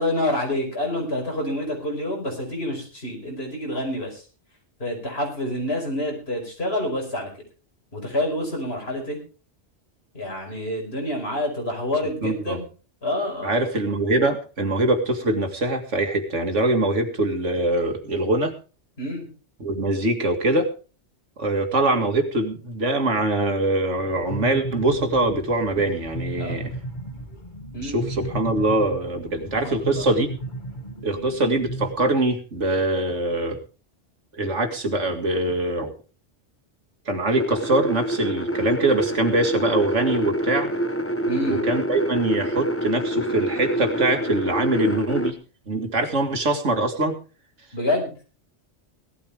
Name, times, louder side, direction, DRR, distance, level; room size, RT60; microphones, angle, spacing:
voice 1, 0.0-4.2 4.8-7.3 7.9-9.2 10.1-12.6 13.0-13.5 19.0-19.3 26.4-26.6 27.7-28.0 29.6-30.0 41.3-41.6 47.7-48.1, left 1 dB, 55° left, 1 dB, 5.5 m, -27 dB
voice 2, 12.2-12.6 13.4-18.5 19.6-20.7 21.4-26.7 27.8-30.3 31.0-33.6 34.3-35.9 37.1-40.7 41.5-45.4 45.7-47.2, right 2 dB, 85° right, 6 dB, 2.4 m, -23 dB
sound 1, 24.0-31.9, right 2 dB, 40° left, 2.3 m, -34 dB
sound 2, 37.4-45.3, equal, 10° left, 1.0 m, -27 dB
17.5 x 13.0 x 3.5 m, 0.35 s
omnidirectional pair, 1.2 m